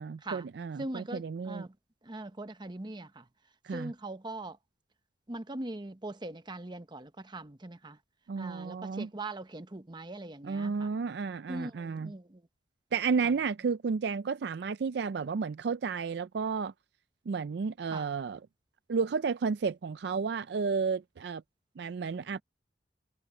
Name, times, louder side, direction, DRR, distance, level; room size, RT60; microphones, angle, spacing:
voice 1, 0.0-1.6 3.6-3.9 8.3-9.1 10.4-12.1 12.9-16.7 17.3-18.4 18.9-21.4 21.8-22.4, right 5 dB, 65° right, 0.4 m, -32 dB
voice 2, 0.8-1.8 2.0-3.3 3.7-4.6 5.3-8.0 8.4-10.9 11.5-12.5 13.2-13.3 17.9-18.1, right 2 dB, 25° right, 0.9 m, -41 dB
head